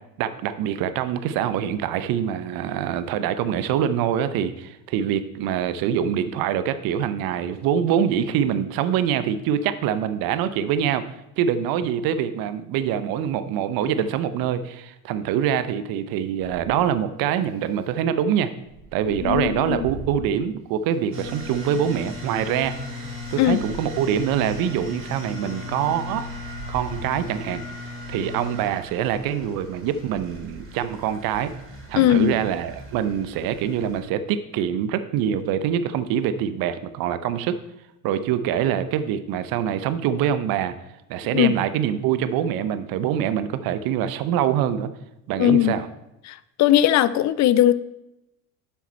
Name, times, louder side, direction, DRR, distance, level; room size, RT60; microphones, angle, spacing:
voice 1, 0.2-11.0 11.4-18.5 18.9-22.7 23.3-26.2 26.7-27.6 28.1-31.5 31.9-37.6 38.0-40.7 41.1-44.9 45.3-45.9, right 9 dB, 55° right, 12 dB, 0.8 m, -24 dB
sound 1, 16.4-16.9 18.6-20.3 20.9-21.0 22.4-23.9 25.4-27.3 29.0-30.5, right 2 dB, 80° right, 1.9 m, -40 dB
voice 2, 19.2-19.9 23.4-23.6 32.0-32.3 41.3-41.6 45.4-45.8 46.3-47.7, left 12 dB, 40° left, 16 dB, 0.5 m, -19 dB
sound 2, 21.1-34.0, left 2 dB, 30° right, 2.8 m, -37 dB
8.1 x 5.9 x 4.3 m, 0.88 s
hypercardioid pair, 75°, 42 cm